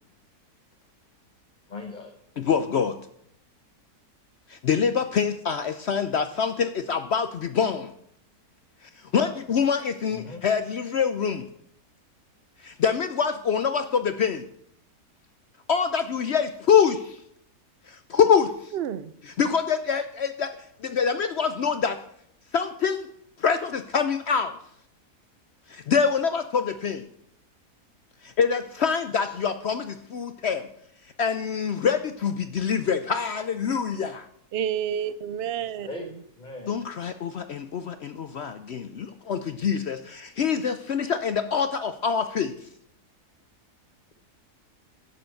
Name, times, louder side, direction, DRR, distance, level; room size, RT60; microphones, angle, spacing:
voice 1, 1.7-2.1 10.0-10.4 29.2-29.3 35.8-36.1 36.4-36.8, left 3 dB, 30° left, 1.2 m, -39 dB
voice 2, 2.4-3.0 4.5-7.9 8.8-11.5 12.6-14.5 15.7-17.2 17.9-18.7 19.4-20.5 20.8-22.0 22.5-23.1 23.4-24.6 25.7-27.1 28.2-30.7 31.2-34.3 36.7-42.7, left 6 dB, 60° left, 0.7 m, -25 dB
voice 3, 18.7-19.1 34.5-36.2, right 9 dB, 65° right, 0.6 m, -30 dB
11.5 x 7.0 x 7.6 m
omnidirectional pair, 1.7 m